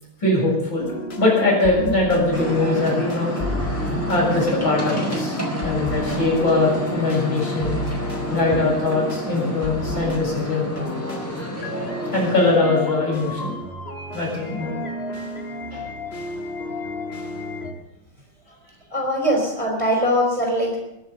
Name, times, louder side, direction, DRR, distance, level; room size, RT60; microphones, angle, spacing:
voice 1, 0.2-0.9 1.2-3.3 4.1-5.4 5.6-7.8 8.3-10.7 12.1-13.5 14.1-14.8 15.7-15.8, left 2 dB, 70° left, -4 dB, 7.8 m, -21 dB
sound 1, 0.8-17.7, left 1 dB, 35° left, 1.5 m, -32 dB
sound 2, 2.3-12.5, equal, 5° left, 4.5 m, -29 dB
voice 2, 18.9-20.8, equal, 15° right, -1 dB, 4.5 m, -21 dB
23.0 x 7.9 x 6.9 m, 0.87 s
omnidirectional pair, 2.2 m